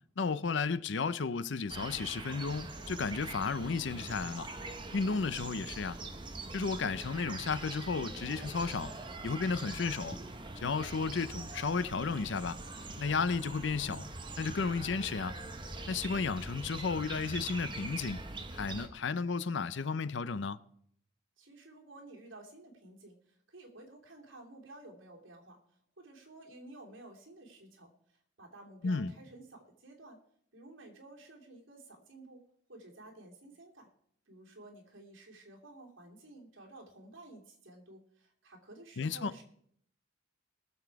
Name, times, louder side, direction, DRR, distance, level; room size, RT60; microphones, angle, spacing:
voice 1, 0.2-4.5 4.9-6.0 6.5-8.9 9.2-10.2 10.6-12.6 13.0-14.1 14.4-15.4 15.9-18.2 18.5-20.6 28.8-29.1 39.0-39.3, left 4 dB, 65° left, 0.5 m, -33 dB
sound 1, 1.7-18.9, right 2 dB, 25° right, 1.0 m, -43 dB
voice 2, 21.4-25.6 26.0-30.2 30.5-32.4 32.7-33.9 34.3-39.4, right 2 dB, 75° right, 3.1 m, -53 dB
21.0 x 7.1 x 4.7 m
head